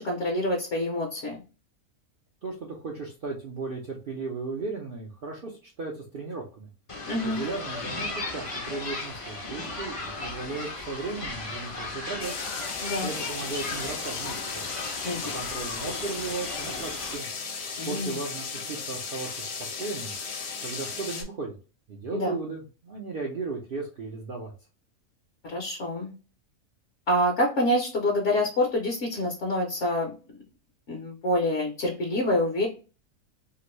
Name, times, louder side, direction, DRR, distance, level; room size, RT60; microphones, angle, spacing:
voice 1, 0.0-1.4 7.1-7.4 12.8-13.1 15.0-15.3 17.8-18.2 22.1-22.4 25.4-26.1 27.1-30.1 30.9-32.7, left 1 dB, 60° left, 0 dB, 1.0 m, -26 dB
voice 2, 2.4-6.7 7.2-12.4 13.0-14.6 15.2-17.3 17.9-19.5 19.8-20.1 20.6-21.5 21.9-24.5, right 3 dB, 65° right, 0 dB, 0.5 m, -36 dB
sound 1, 6.9-17.2, left 3 dB, 40° left, 0.5 m, -36 dB
sound 2, 12.2-21.2, left 5 dB, 80° left, 1.2 m, -36 dB
2.9 x 2.5 x 3.0 m, 0.34 s
omnidirectional pair, 1.6 m